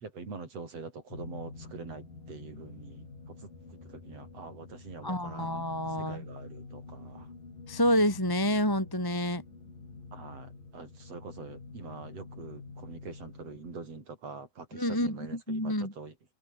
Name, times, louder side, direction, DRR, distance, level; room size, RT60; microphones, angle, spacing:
voice 1, 0.0-3.4 3.8-5.6 6.0-7.3 10.1-16.1, right 4 dB, 35° right, 6.5 m, -44 dB
sound 1, 1.1-13.6, left 4 dB, 50° left, 9.2 m, -47 dB
voice 2, 5.0-6.2 7.7-9.4 14.7-15.9, equal, 5° left, 4.3 m, -28 dB
omnidirectional pair, 5.1 m